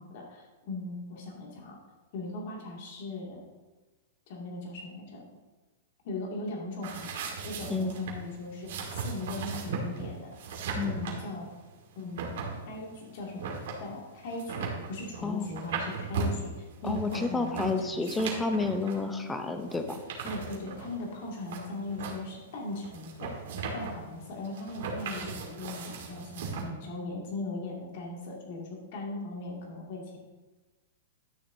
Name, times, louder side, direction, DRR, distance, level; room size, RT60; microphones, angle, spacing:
voice 1, 0.0-1.8 2.1-3.4 4.3-5.3 6.0-10.4 10.9-11.5 11.9-13.5 13.8-18.3 20.2-23.3 23.7-30.2, left 2 dB, 55° left, -2 dB, 2.4 m, -39 dB
sound 1, 6.8-26.6, right 5 dB, 65° right, 1.7 m, -37 dB
voice 2, 16.8-20.0, left 3 dB, 10° left, 7 dB, 0.7 m, -30 dB
11.5 x 6.5 x 2.8 m, 1.2 s
hypercardioid pair, 155°, 0 cm